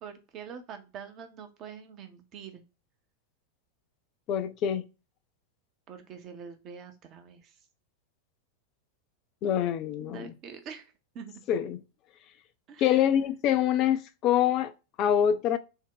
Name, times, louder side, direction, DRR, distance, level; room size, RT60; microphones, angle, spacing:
voice 1, 0.0-2.6 5.9-7.6 10.0-11.3 12.7-13.0, right 6 dB, 35° right, 0.7 m, -45 dB
voice 2, 4.3-4.8 9.4-10.3 11.5-11.8 12.8-14.7 15.0-15.6, left 10 dB, 40° left, 0.4 m, -25 dB
3.6 x 2.1 x 3.6 m
figure-of-eight pair, 90°, 0 cm